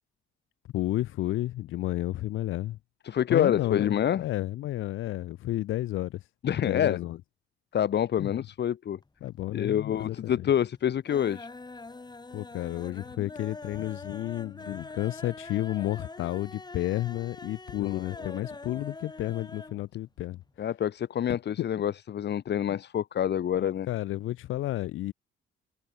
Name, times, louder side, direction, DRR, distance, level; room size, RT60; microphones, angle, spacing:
voice 1, 0.7-2.8 3.3-6.3 6.6-7.2 8.2-8.4 9.2-10.5 12.3-20.4 22.7-22.8 23.5-25.1, left 15 dB, 85° left, 2.9 m, -31 dB
voice 2, 3.1-4.3 6.4-7.0 7.7-9.0 9.5-11.5 17.8-18.5 20.6-23.9, left 9 dB, 60° left, 1.9 m, -27 dB
sound 1, 9.0-9.6 9.9-10.5 10.8-19.8 20.1-20.2 20.5-20.6, left 3 dB, 20° left, 7.4 m, -44 dB
cardioid pair, 90°, 20 cm